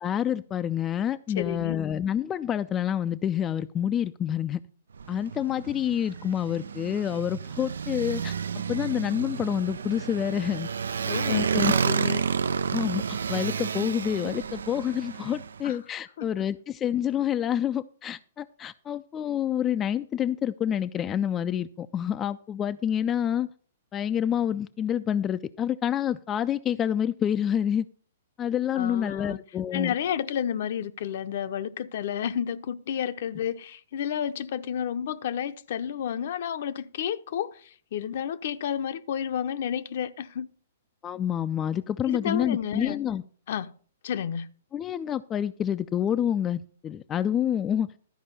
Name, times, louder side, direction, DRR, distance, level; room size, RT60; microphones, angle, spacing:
voice 1, 0.0-4.6 5.1-8.3 8.7-10.7 11.3-11.8 12.7-23.5 23.9-27.9 28.4-29.9 41.0-43.2 44.7-47.9, left 9 dB, 20° left, 0.4 m, -28 dB
voice 2, 1.3-1.8 11.1-12.2 15.6-15.8 16.2-16.4 28.7-29.4 29.7-40.5 42.1-43.0 43.5-43.7 44.0-44.5, left 9 dB, 55° left, 0.7 m, -31 dB
Motorcycle, 4.9-15.6, right 6 dB, 75° right, 0.4 m, -30 dB
12.5 x 5.0 x 6.7 m
hypercardioid pair, 120°, 0 cm